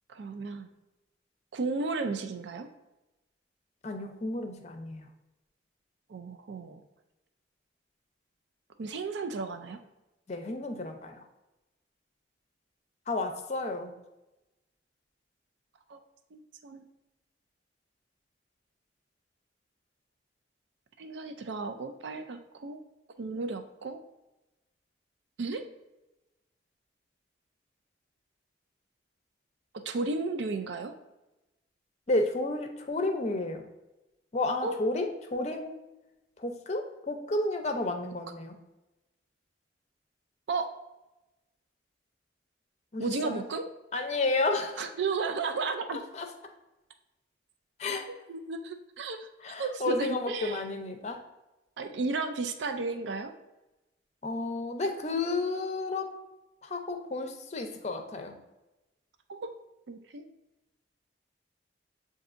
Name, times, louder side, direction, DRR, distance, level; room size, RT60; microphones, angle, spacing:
voice 1, 0.1-0.7 1.5-2.7 6.1-6.8 8.8-9.8 15.9-16.0 16.3-16.8 21.0-22.8 23.2-24.0 25.4-25.6 29.8-30.9 34.6-34.7 40.5-40.7 43.0-43.7 44.8-46.0 48.3-49.3 49.6-50.6 51.8-53.3 59.3-59.5 59.9-60.2, right 4 dB, 75° right, 7 dB, 0.4 m, -33 dB
voice 2, 3.8-5.1 10.3-11.2 13.1-13.9 32.1-33.6 34.3-35.7 36.4-38.6 42.9-43.4 43.9-44.9 45.9-46.3 47.8-48.0 49.4-51.2 54.2-56.1 56.6-58.3, left 2 dB, 35° left, 5 dB, 0.5 m, -31 dB
7.8 x 2.6 x 2.5 m, 1.0 s
head